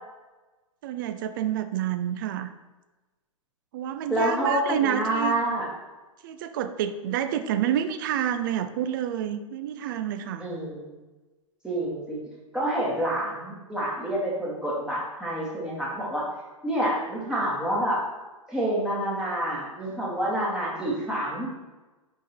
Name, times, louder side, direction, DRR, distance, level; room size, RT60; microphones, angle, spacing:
voice 1, 0.8-2.5 3.7-5.3 6.2-10.5, right 10 dB, 35° right, 10 dB, 0.4 m, -28 dB
voice 2, 4.1-5.7 10.4-10.9 11.6-12.2 12.5-16.2 16.6-18.0 18.5-21.5, right 1 dB, 5° right, -6 dB, 1.7 m, -28 dB
5.4 x 4.5 x 4.4 m, 1.2 s
figure-of-eight pair, 110°, 18 cm